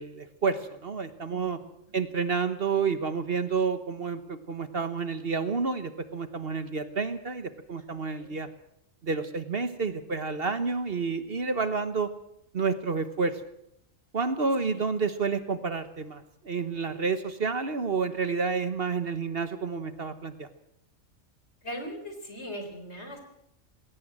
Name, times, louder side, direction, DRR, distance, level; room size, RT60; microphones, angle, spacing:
voice 1, 0.0-1.6 1.9-8.5 9.0-12.1 12.5-13.4 14.1-20.5, right 5 dB, 50° right, 11 dB, 1.3 m, -29 dB
voice 2, 1.3-2.0 8.2-8.4 14.7-14.8 21.6-23.2, equal, 55° left, 6 dB, 4.2 m, -40 dB
20.5 x 17.5 x 7.6 m, 0.76 s
omnidirectional pair, 1.3 m